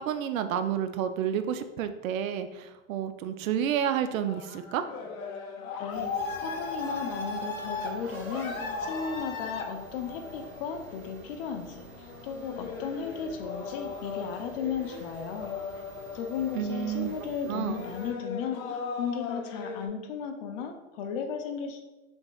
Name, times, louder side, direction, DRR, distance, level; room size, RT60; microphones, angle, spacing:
voice 1, 0.0-4.8 16.5-17.1 17.5-17.8, right 9 dB, 75° right, 10 dB, 0.5 m, -30 dB
sound 1, 4.3-19.9, left 4 dB, 85° left, 0.8 m, -38 dB
voice 2, 5.8-15.5 16.1-21.8, left 6 dB, 45° left, 5 dB, 0.5 m, -35 dB
sound 2, 5.9-18.1, right 2 dB, 50° right, 0.9 m, -47 dB
5.2 x 3.0 x 2.3 m, 1.1 s
supercardioid pair, 135°, 41 cm